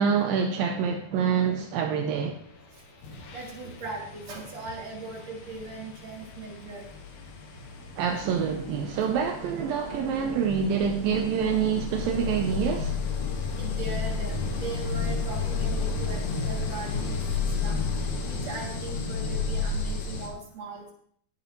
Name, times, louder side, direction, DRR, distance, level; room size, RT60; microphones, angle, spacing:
voice 1, 0.0-2.4 8.0-13.0, right 7 dB, 75° right, 2.2 m, -26 dB
sound 1, 2.5-2.7 3.0-20.3, left 4 dB, 60° left, 2.6 m, -32 dB
voice 2, 3.3-6.9 13.6-17.2 17.6-20.9, right 3 dB, 45° right, 3.3 m, -39 dB
20.0 x 8.3 x 3.1 m
omnidirectional pair, 4.8 m